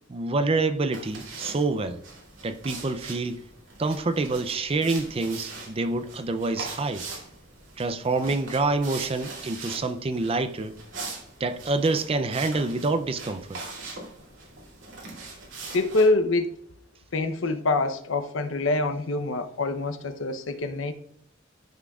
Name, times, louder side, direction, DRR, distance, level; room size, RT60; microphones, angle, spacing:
voice 1, 0.1-2.0 2.4-3.4 3.8-7.1 7.8-10.8 11.4-13.6, right 3 dB, 30° right, 0.4 m, -27 dB
sound 1, 0.9-16.1, right 3 dB, 70° right, 2.5 m, -41 dB
voice 2, 15.7-16.6 17.1-20.9, left 2 dB, 80° left, 0.8 m, -25 dB
13.0 x 6.1 x 2.4 m
head